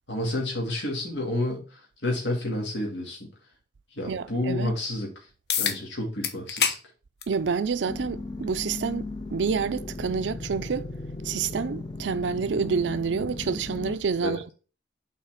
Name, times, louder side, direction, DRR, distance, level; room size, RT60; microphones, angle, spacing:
voice 1, 0.1-3.3 4.0-5.1 5.6-6.8 14.2-14.4, left 1 dB, 90° left, 2.2 m, -30 dB
voice 2, 4.1-4.8 7.3-10.8 11.2-14.5, right 5 dB, 90° right, 0.4 m, -28 dB
sound 1, 5.5-5.8 6.2-6.8 7.2-7.4 8.4-8.5 13.4-13.5, left 7 dB, 65° left, 0.9 m, -26 dB
sound 2, 7.9-14.0, left 2 dB, 25° left, 0.4 m, -37 dB
5.7 x 4.1 x 5.7 m
head